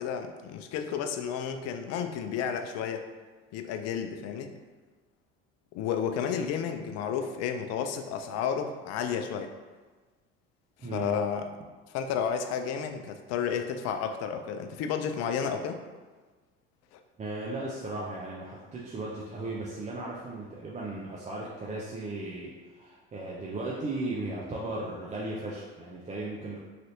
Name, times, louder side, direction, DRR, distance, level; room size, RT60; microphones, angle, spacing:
voice 1, 0.0-3.0 3.5-4.5 5.7-9.5 10.9-11.5 11.9-15.8 16.9-17.0, left 7 dB, 60° left, 7 dB, 0.4 m, -32 dB
voice 2, 10.8-11.2 17.2-26.6, right 2 dB, 25° right, -4 dB, 0.5 m, -36 dB
3.2 x 2.6 x 2.6 m, 1.4 s
hypercardioid pair, 70°, 30 cm